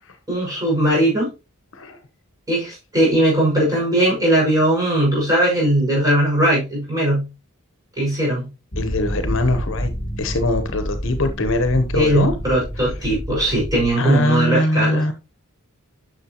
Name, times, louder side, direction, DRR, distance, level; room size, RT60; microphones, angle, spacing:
voice 1, 0.3-1.3 2.5-7.3 8.0-8.5 11.9-15.0, right 1 dB, 15° right, -5 dB, 5.8 m, -19 dB
sound 1, 8.7-13.9, equal, 35° left, 2.9 m, -28 dB
voice 2, 8.8-9.9 10.2-12.3 12.8-12.9 14.0-15.1, left 2 dB, 60° left, 9 dB, 1.0 m, -21 dB
11.0 x 6.5 x 3.0 m, 0.28 s
head